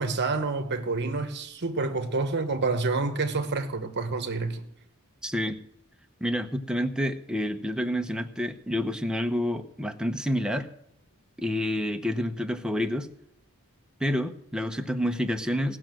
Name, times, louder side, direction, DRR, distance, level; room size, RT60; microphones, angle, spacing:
voice 1, 0.0-4.6, right 3 dB, 50° right, 1.1 m, -28 dB
voice 2, 5.2-5.6 6.2-10.7 11.4-13.1 14.0-15.8, equal, 5° right, 0.8 m, -28 dB
17.5 x 6.2 x 7.7 m
head